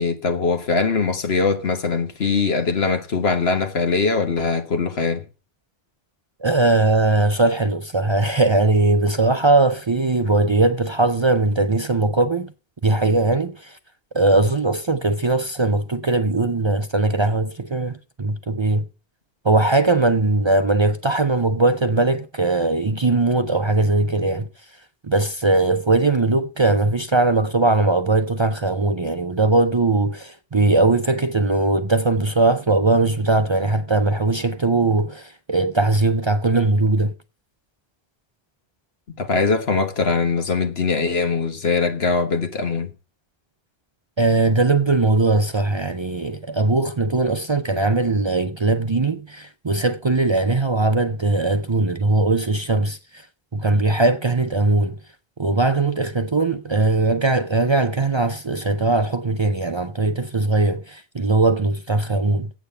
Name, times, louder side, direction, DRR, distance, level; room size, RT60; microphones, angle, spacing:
voice 1, 0.0-5.2 39.2-42.9, left 4 dB, 80° left, 1.6 m, -21 dB
voice 2, 6.4-12.5 12.8-13.8 14.1-18.8 19.4-24.5 25.0-37.1 44.2-53.2 53.5-55.0 55.4-62.5, right 2 dB, 35° right, 0.5 m, -20 dB
8.6 x 8.3 x 6.6 m
omnidirectional pair, 1.0 m